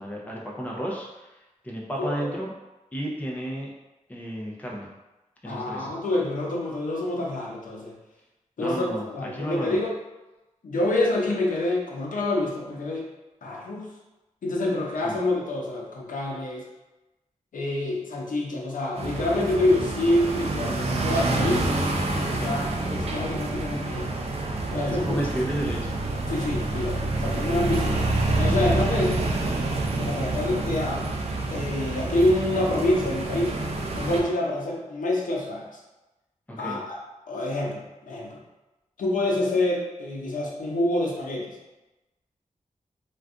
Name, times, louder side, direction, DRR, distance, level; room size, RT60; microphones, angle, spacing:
voice 1, 0.0-1.3 1.6-2.5 2.9-3.7 4.1-4.9 5.4-5.9 8.6-9.8 15.0-15.1 22.3-22.6 24.9-26.0 36.5-36.8, equal, 10° left, -3 dB, 0.5 m, -32 dB
voice 2, 5.4-7.9 8.6-9.9 10.6-13.1 13.4-13.9 14.4-16.7 17.5-21.7 22.1-24.0 24.7-25.2 26.3-28.0 28.4-29.2 30.0-31.1 31.5-33.5 33.9-35.8 36.6-37.0 37.3-38.4 39.0-41.6, left 1 dB, 85° left, -2 dB, 0.6 m, -27 dB
sound 1, 18.9-34.2, right 2 dB, 50° right, 0.4 m, -27 dB
2.4 x 2.2 x 3.5 m, 1.0 s
wide cardioid pair, 160°, 13 cm